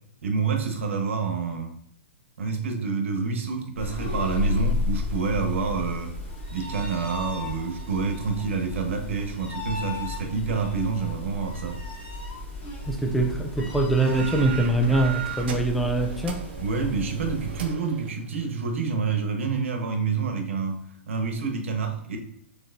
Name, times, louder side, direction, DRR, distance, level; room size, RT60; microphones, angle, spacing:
voice 1, 0.2-1.7 2.4-6.1 6.5-11.8 16.6-22.2, right 5 dB, 75° right, 3 dB, 1.2 m, -28 dB
sound 1, 3.8-17.7, left 3 dB, 20° left, 1.5 m, -33 dB
voice 2, 12.9-16.4, right 2 dB, ahead, 2 dB, 0.3 m, -23 dB
sound 2, 14.0-19.0, right 8 dB, 55° right, 0.8 m, -38 dB
6.5 x 3.1 x 2.6 m, 0.74 s
hypercardioid pair, 165°, 7 cm